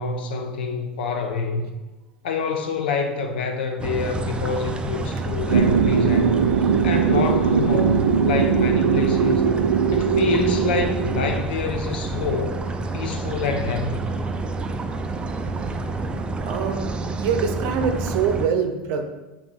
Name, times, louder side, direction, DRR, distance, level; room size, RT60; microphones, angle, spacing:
voice 1, 0.0-1.6 2.2-6.4 6.8-9.4 9.9-12.6 12.9-14.1, left 5 dB, 65° left, 5 dB, 0.8 m, -27 dB
sound 1, 3.8-18.5, right 3 dB, 20° right, 0.5 m, -29 dB
sound 2, 5.5-11.4, right 6 dB, 75° right, 0.4 m, -20 dB
voice 2, 16.4-16.9 17.2-19.0, right 6 dB, 55° right, 6 dB, 0.7 m, -24 dB
7.4 x 2.8 x 4.6 m, 1.1 s
figure-of-eight pair, 80°, 6 cm